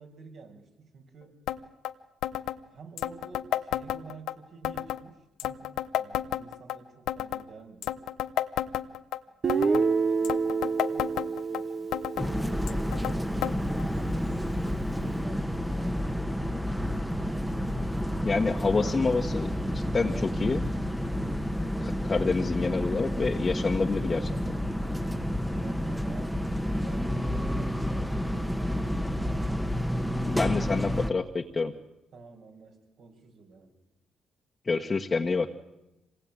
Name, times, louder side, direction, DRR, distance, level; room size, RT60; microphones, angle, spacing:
voice 1, 0.0-1.4 2.7-8.0 8.9-11.9 13.1-14.5 14.8-16.2 16.4-16.7 25.4-26.4 26.7-29.7 32.1-33.7, right 4 dB, 65° right, 2 dB, 6.0 m, -50 dB
sound 1, 1.5-1.6 1.8-1.9 2.2-2.6 3.0-4.3 4.6-5.0 5.4-6.8 7.1-7.4 7.8-9.2 9.5-9.9 10.2-11.6 11.9-12.3 12.7-13.2 13.4-13.5 13.8-13.9 14.7-14.8 15.5-15.6, left 12 dB, 85° left, 0.9 m, -31 dB
Guitar, 9.4-13.4, right 5 dB, 40° right, 1.0 m, -28 dB
sound 2, 12.2-31.1, equal, ahead, 1.4 m, -30 dB
voice 2, 18.2-20.6 21.8-24.4 30.3-31.7 34.7-35.5, left 4 dB, 30° left, 1 dB, 1.5 m, -28 dB
26.0 x 19.5 x 9.0 m, 0.93 s
cardioid pair, 90°, 0 cm